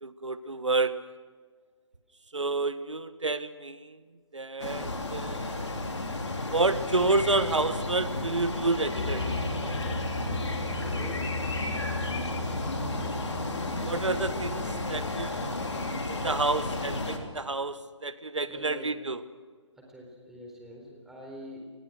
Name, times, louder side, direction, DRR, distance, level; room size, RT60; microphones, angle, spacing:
voice 1, 0.0-1.0 2.3-4.0 4.3-5.6 6.5-9.4 13.8-15.5 16.1-19.2, right 3 dB, 80° right, 13 dB, 1.4 m, -29 dB
sound 1, 4.6-17.2, left 2 dB, 70° left, 3.6 m, -33 dB
sound 2, 9.0-15.7, left 2 dB, 45° left, 7.0 m, -37 dB
voice 2, 10.9-11.3 18.5-18.9 19.8-21.6, equal, ahead, -1 dB, 4.1 m, -45 dB
26.0 x 20.0 x 6.5 m, 1.5 s
figure-of-eight pair, 145°, 15 cm